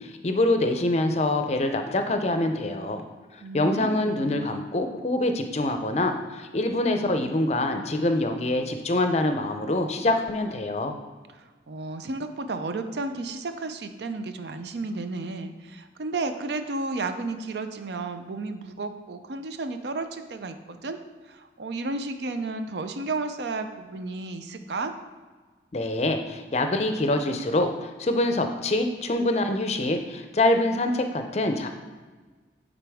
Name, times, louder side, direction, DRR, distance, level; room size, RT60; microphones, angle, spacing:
voice 1, 0.0-3.0 3.5-11.0 25.7-31.7, left 2 dB, 35° left, 6 dB, 0.5 m, -25 dB
voice 2, 3.4-4.4 11.3-21.0 21.3-24.9, right 3 dB, 70° right, 8 dB, 0.5 m, -33 dB
9.1 x 3.9 x 3.5 m, 1.4 s
head